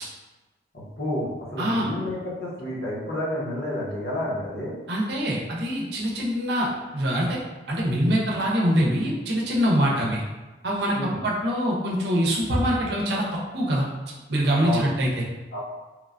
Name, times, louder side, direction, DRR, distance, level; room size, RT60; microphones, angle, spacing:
voice 1, 0.7-4.7 9.8-10.1 10.9-11.2 14.6-14.9 15.5-15.6, left 1 dB, 65° left, -6 dB, 0.9 m, -30 dB
voice 2, 4.9-7.4 7.7-10.2 10.6-13.2 13.5-13.8 14.3-15.2, equal, 65° right, -3 dB, 0.6 m, -24 dB
3.0 x 2.1 x 2.4 m, 1.1 s
head